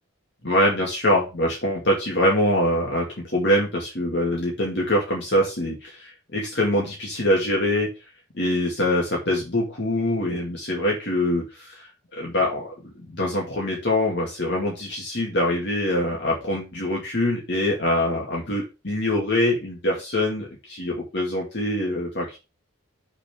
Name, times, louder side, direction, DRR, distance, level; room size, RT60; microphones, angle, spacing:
voice 1, 0.4-3.1 3.3-7.9 8.3-11.9 12.2-12.7 13.1-22.4, left 1 dB, 55° left, -2 dB, 2.3 m, -24 dB
6.8 x 4.4 x 6.0 m, 0.28 s
head